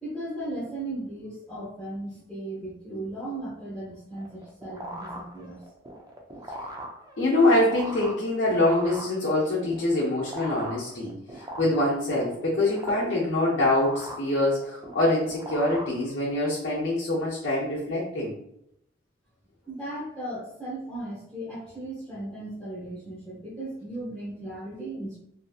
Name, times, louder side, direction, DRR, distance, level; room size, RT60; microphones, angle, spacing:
voice 1, 0.0-5.6 19.7-25.2, right 1 dB, ahead, -10 dB, 0.9 m, -36 dB
sound 1, 4.1-16.5, right 1 dB, 20° right, 0.4 m, -41 dB
voice 2, 7.2-18.3, left 1 dB, 85° left, -6 dB, 0.7 m, -25 dB
2.7 x 2.7 x 2.4 m, 0.78 s
head